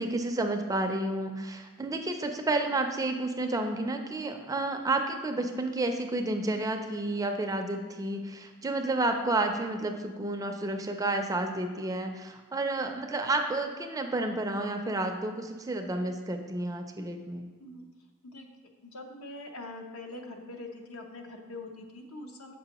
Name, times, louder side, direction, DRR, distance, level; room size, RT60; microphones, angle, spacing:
voice 1, 0.0-17.5, right 2 dB, 15° right, 5 dB, 0.4 m, -31 dB
voice 2, 18.8-22.5, left 2 dB, 75° left, 3 dB, 0.7 m, -43 dB
6.8 x 5.1 x 2.9 m, 1.3 s
head